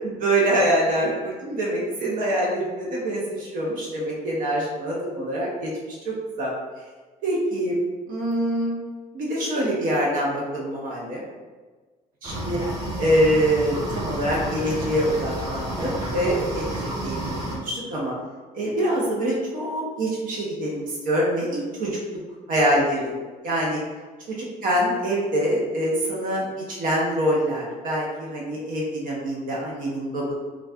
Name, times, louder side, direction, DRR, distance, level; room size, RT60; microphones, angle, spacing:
voice 1, 0.2-6.5 7.2-7.8 8.1-8.8 9.1-11.2 12.2-12.6 13.0-18.1 18.5-22.0 22.5-23.8 24.3-24.4 24.6-30.3, right 1 dB, 60° right, -4 dB, 0.8 m, -25 dB
sound 1, 12.2-17.6, right 1 dB, 25° right, 0.9 m, -30 dB
4.0 x 2.3 x 2.3 m, 1.4 s
cardioid pair, 120°, 15 cm